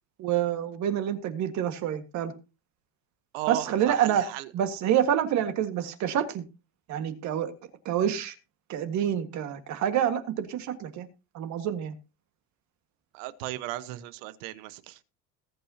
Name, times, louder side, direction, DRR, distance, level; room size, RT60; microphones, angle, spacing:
voice 1, 0.2-2.3 3.5-4.2 4.5-6.4 6.9-7.5 7.9-8.3 8.7-11.1 11.3-11.9, right 10 dB, 45° right, 1.7 m, -27 dB
voice 2, 3.3-4.5 13.1-15.0, right 15 dB, 85° right, 1.2 m, -35 dB
20.5 x 8.9 x 2.8 m
cardioid pair, 160°, 38 cm